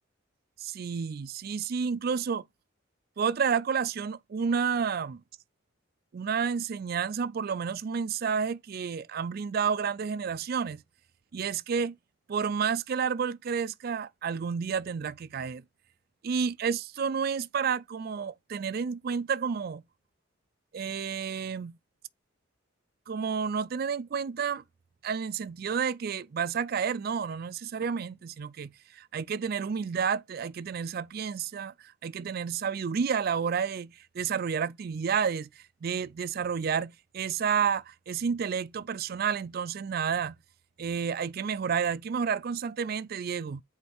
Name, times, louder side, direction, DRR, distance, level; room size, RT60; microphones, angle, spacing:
voice 1, 0.6-2.4 3.2-5.2 6.1-10.8 11.3-11.9 12.3-15.6 16.2-19.8 20.7-21.7 23.1-24.6 25.0-40.3 40.8-43.6, right 6 dB, 50° right, 0.4 m, -30 dB
7.7 x 4.8 x 3.5 m
head